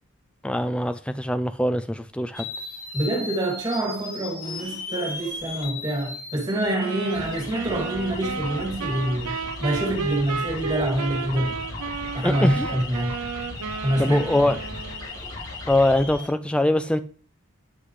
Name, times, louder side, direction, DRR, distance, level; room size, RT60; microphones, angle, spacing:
voice 1, 0.4-2.4 12.2-12.7 14.0-14.6 15.7-17.0, left 1 dB, 5° left, 0.3 m, -23 dB
sound 1, 2.3-16.3, left 2 dB, 85° left, 3.2 m, -36 dB
voice 2, 2.9-11.6 12.1-13.2 13.8-14.5, right 1 dB, 20° right, 2.4 m, -26 dB
sound 2, 6.8-15.2, right 5 dB, 90° right, 0.8 m, -33 dB
9.7 x 5.8 x 3.2 m
head